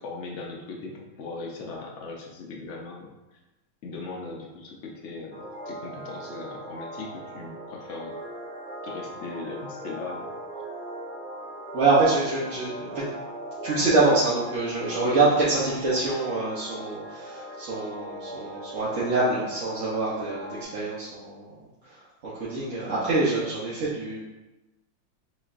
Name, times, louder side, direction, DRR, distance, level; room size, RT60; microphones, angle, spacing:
voice 1, 0.0-3.1 3.8-8.1 8.8-10.3 15.0-15.2, left 3 dB, 80° left, -1 dB, 0.6 m, -39 dB
sound 1, 5.3-20.6, right 1 dB, 20° right, 0.9 m, -39 dB
voice 2, 11.7-13.0 13.6-21.5 21.8-24.2, right 3 dB, 50° right, -9 dB, 1.0 m, -25 dB
6.1 x 3.3 x 2.5 m, 1.0 s
omnidirectional pair, 2.0 m